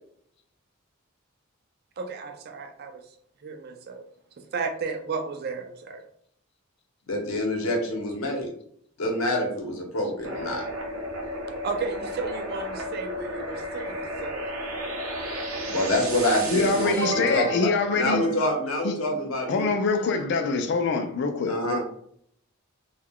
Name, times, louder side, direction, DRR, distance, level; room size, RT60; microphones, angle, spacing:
voice 1, 2.0-3.0 3.4-4.0 4.4-6.0 11.6-14.4, right 4 dB, 50° right, 0.4 m, -33 dB
voice 2, 7.1-8.5 9.0-10.7 15.7-19.7 21.5-21.8, left 1 dB, 80° left, 0.8 m, -26 dB
sound 1, 10.2-18.9, right 1 dB, 85° right, 0.6 m, -33 dB
voice 3, 16.5-18.3 18.8-18.9 19.5-21.8, left 4 dB, 55° left, 0.4 m, -25 dB
2.3 x 2.2 x 3.5 m
head